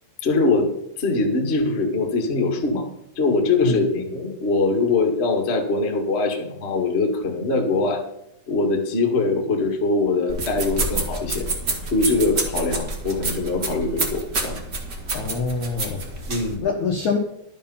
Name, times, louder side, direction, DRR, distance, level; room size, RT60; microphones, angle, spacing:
voice 1, 0.2-0.7 1.0-2.9 3.1-8.0 8.5-11.4 11.9-14.6 16.3-16.6, left 3 dB, 55° left, 2 dB, 0.7 m, -22 dB
sound 1, 10.3-16.5, right 2 dB, 40° right, 1.6 m, -28 dB
voice 2, 15.1-16.3 16.6-17.2, left 4 dB, 75° left, 1 dB, 1.8 m, -25 dB
12.5 x 9.2 x 5.6 m, 0.78 s
omnidirectional pair, 5.3 m